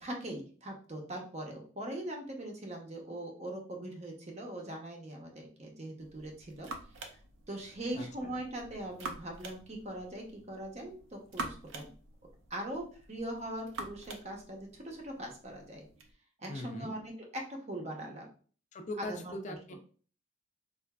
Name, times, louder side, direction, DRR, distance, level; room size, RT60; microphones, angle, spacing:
voice 1, 0.0-6.7 7.5-11.9 12.5-15.9 16.4-18.3 19.0-19.8, right 1 dB, 35° right, 1 dB, 0.7 m, -41 dB
sound 1, 6.0-16.1, right 2 dB, 75° right, 0.6 m, -47 dB
voice 2, 7.9-8.4 16.5-16.9 18.7-19.8, left 1 dB, 35° left, 5 dB, 0.5 m, -41 dB
4.6 x 2.4 x 2.2 m, 0.42 s
head